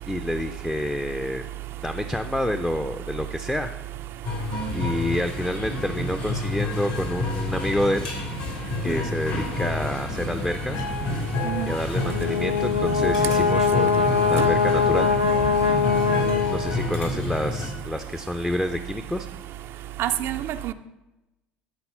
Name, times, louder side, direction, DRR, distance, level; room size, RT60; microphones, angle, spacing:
voice 1, 0.1-1.5 1.8-3.7 4.7-8.1 8.8-10.8 11.7-15.1 16.5-19.3, left 1 dB, 5° left, 0.5 m, -28 dB
sound 1, 4.2-17.7, left 2 dB, 70° left, 2.0 m, -29 dB
Brass instrument, 11.9-17.0, left 5 dB, 90° left, 0.5 m, -22 dB
voice 2, 20.0-20.7, right 12 dB, 50° right, 0.4 m, -28 dB
12.5 x 4.2 x 5.5 m
figure-of-eight pair, 60°, 5 cm